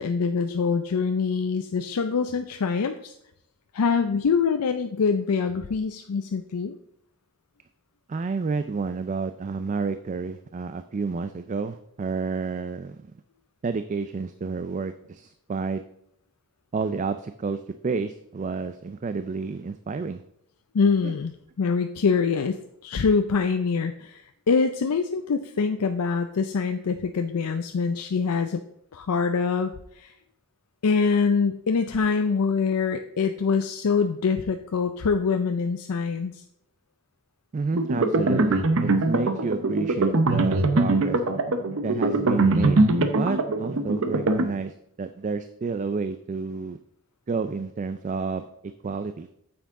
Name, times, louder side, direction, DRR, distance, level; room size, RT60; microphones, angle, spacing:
voice 1, 0.0-3.1 3.7-6.7 20.7-28.6 28.9-30.1 30.8-36.4, left 5 dB, 90° left, 7 dB, 0.5 m, -24 dB
voice 2, 8.1-13.1 13.6-15.8 16.7-20.2 21.0-21.2 37.5-41.2 41.8-46.8 47.3-49.3, right 4 dB, 35° right, 11 dB, 0.3 m, -30 dB
sound 1, 37.7-44.4, right 2 dB, 60° right, 0.7 m, -22 dB
9.1 x 7.0 x 3.6 m, 0.76 s
head